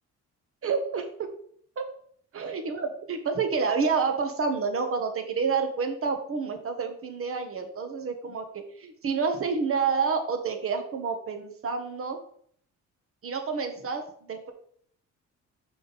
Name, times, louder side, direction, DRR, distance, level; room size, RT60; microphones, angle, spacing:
voice 1, 0.6-1.1 1.8-1.9 2.3-12.2 13.2-14.5, right 5 dB, 45° right, 7 dB, 1.3 m, -29 dB
6.0 x 5.3 x 4.0 m, 0.62 s
cardioid pair, 90°, 30 cm